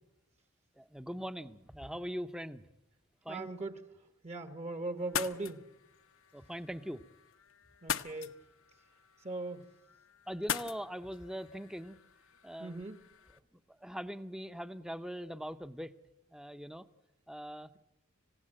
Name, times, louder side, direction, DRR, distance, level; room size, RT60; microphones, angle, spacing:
voice 1, 0.8-2.6 3.2-3.5 6.3-7.0 10.3-12.0 12.4-12.8 13.5-15.9 16.3-16.8 17.3-17.7, equal, 5° right, 12 dB, 0.7 m, -41 dB
voice 2, 3.3-3.8 4.2-5.6 7.8-8.3 9.2-9.7 12.6-13.0, right 2 dB, 30° right, 9 dB, 1.1 m, -39 dB
sound 1, 5.0-13.4, left 8 dB, 70° left, 0.9 m, -43 dB
26.5 x 16.5 x 8.9 m, 0.93 s
head